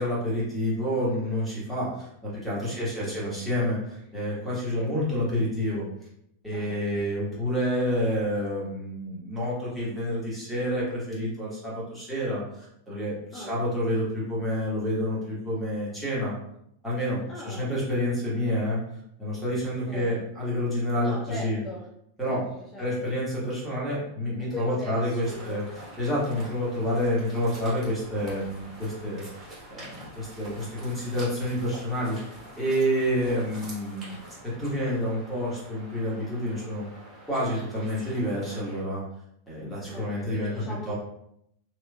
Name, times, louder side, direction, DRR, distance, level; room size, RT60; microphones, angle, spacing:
voice 1, 0.0-5.8 6.4-16.3 16.8-18.8 19.2-21.6 22.2-22.4 22.8-25.6 26.0-36.8 37.3-39.0 39.5-40.9, equal, ahead, -9 dB, 1.5 m, -29 dB
voice 2, 2.6-3.1 4.5-4.9 6.5-6.8 13.3-13.6 17.3-17.7 19.6-20.2 20.9-21.9 22.3-23.2 24.4-25.7 39.8-40.9, left 1 dB, 20° left, -3 dB, 0.4 m, -40 dB
sound 1, 25.2-38.8, right 1 dB, 20° right, 1.4 m, -46 dB
3.0 x 2.9 x 2.3 m, 0.76 s
figure-of-eight pair, 90°, 0 cm